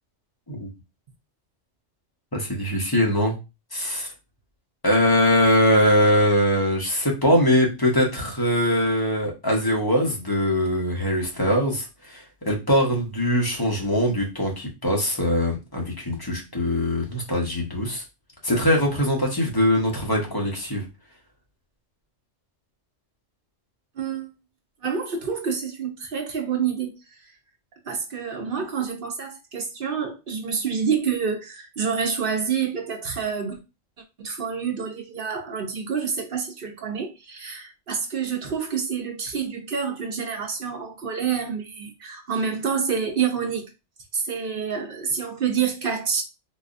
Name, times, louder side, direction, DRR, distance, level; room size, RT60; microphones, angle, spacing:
voice 1, 2.3-3.3 3.7-4.1 4.8-18.0 18.4-20.8, left 1 dB, 20° left, 1.0 m, -22 dB
voice 2, 24.0-24.3 24.8-26.9 27.8-33.6 34.2-43.7 44.1-46.2, right 6 dB, 55° right, 0.9 m, -28 dB
3.9 x 2.8 x 2.5 m
omnidirectional pair, 1.2 m